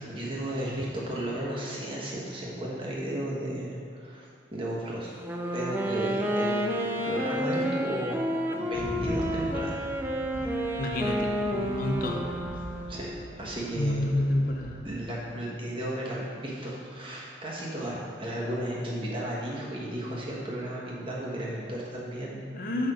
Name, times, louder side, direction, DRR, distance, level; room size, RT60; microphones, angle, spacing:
voice 1, 0.1-5.1 5.5-8.2 8.5-9.8 12.9-14.0 14.8-22.4, right 1 dB, 30° right, -5 dB, 1.4 m, -34 dB
Wind instrument woodwind instrument, 5.1-13.2, equal, 10° right, 0.5 m, -30 dB
sound 1, 8.7-15.0, equal, 80° left, 1.4 m, -40 dB
voice 2, 10.8-12.2 13.8-14.8 22.5-22.9, left 1 dB, 50° left, 1 dB, 0.7 m, -29 dB
6.8 x 5.6 x 5.1 m, 2.2 s
head